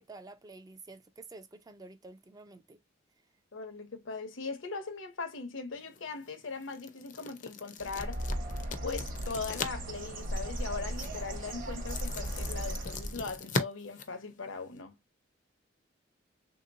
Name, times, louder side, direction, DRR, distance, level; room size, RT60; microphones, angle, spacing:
voice 1, 0.0-2.8, right 3 dB, 20° right, 0.4 m, -50 dB
voice 2, 3.5-8.2 8.8-15.0, left 4 dB, 75° left, 0.9 m, -39 dB
sound 1, 5.8-14.8, left 4 dB, 40° left, 0.5 m, -41 dB
Bird, 7.8-13.4, right 1 dB, 45° right, 0.9 m, -37 dB
3.4 x 2.9 x 2.5 m
head